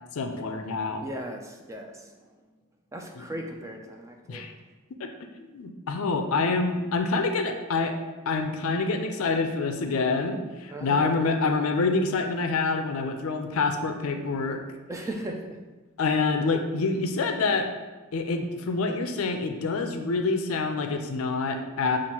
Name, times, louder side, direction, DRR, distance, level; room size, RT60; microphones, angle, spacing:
voice 1, 0.1-1.0 3.2-3.3 4.3-4.5 5.0-5.1 5.4-8.0 8.3-14.6 16.0-17.7 18.1-22.0, left 3 dB, 65° left, 5 dB, 0.4 m, -26 dB
voice 2, 1.0-2.3 2.9-4.5 10.7-11.2 14.9-15.6 16.1-16.2, right 1 dB, 15° right, 2 dB, 0.3 m, -37 dB
7.0 x 2.5 x 2.9 m, 1.2 s
head